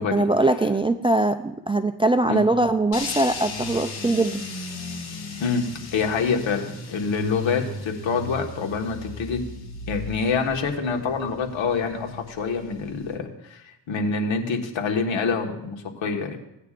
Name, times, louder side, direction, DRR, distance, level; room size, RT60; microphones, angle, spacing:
voice 1, 0.1-4.4, right 2 dB, 15° right, 7 dB, 0.3 m, -22 dB
sound 1, 2.9-13.1, left 4 dB, 55° left, 2.1 m, -36 dB
voice 2, 5.9-9.4 9.9-13.6 13.9-16.4, left 5 dB, 75° left, 2 dB, 1.6 m, -26 dB
17.0 x 9.3 x 2.5 m, 0.87 s
cardioid pair, 95°, 45 cm